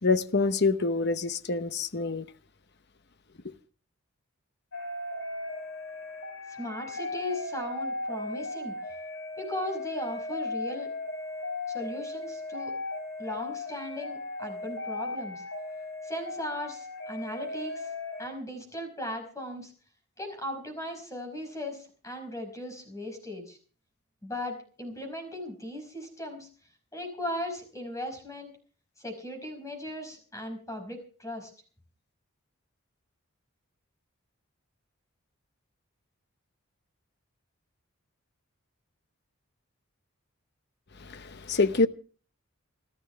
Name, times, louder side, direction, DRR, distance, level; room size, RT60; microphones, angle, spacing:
voice 1, 0.0-2.2 41.0-41.9, left 3 dB, 50° left, 0.9 m, -26 dB
sound 1, 4.7-18.3, left 2 dB, 70° left, 6.6 m, -37 dB
voice 2, 6.6-8.7 9.4-10.9 11.7-12.7 13.2-15.4 16.0-17.9 18.2-19.7 20.2-23.6 24.2-26.5 26.9-28.5 29.0-31.5, left 1 dB, 15° left, 5.1 m, -37 dB
28.0 x 12.5 x 3.4 m
head